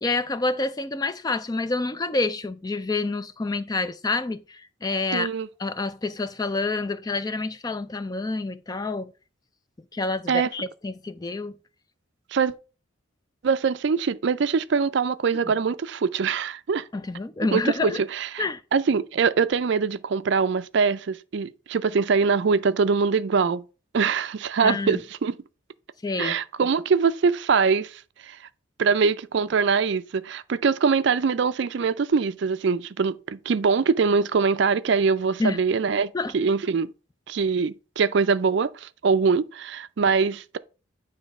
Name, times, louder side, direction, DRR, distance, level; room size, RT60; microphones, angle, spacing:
voice 1, 0.0-5.3 5.6-9.1 9.9-11.5 16.9-18.0 18.4-18.6 24.6-25.0 26.0-26.4 35.4-35.6 36.1-36.3, left 3 dB, 20° left, 0.3 m, -28 dB
voice 2, 5.1-5.5 10.3-10.5 12.3-12.5 13.4-16.8 17.5-18.4 18.7-23.6 23.9-25.3 26.2-28.4 28.8-36.9 37.3-40.6, right 5 dB, 55° right, 0.4 m, -23 dB
9.2 x 3.2 x 5.2 m
head